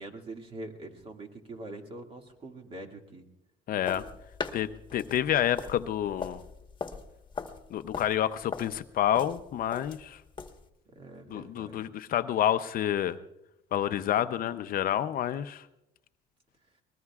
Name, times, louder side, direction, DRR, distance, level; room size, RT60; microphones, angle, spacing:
voice 1, 0.0-3.2 10.9-11.8, right 2 dB, 35° right, 3 dB, 2.2 m, -44 dB
voice 2, 3.7-4.0 4.5-6.4 7.7-10.2 11.3-13.2 13.7-15.6, left 11 dB, 60° left, 11 dB, 0.6 m, -28 dB
sound 1, 3.8-10.7, left 5 dB, 25° left, 1.3 m, -40 dB
24.0 x 20.0 x 2.4 m, 0.86 s
cardioid pair, 110°, 17 cm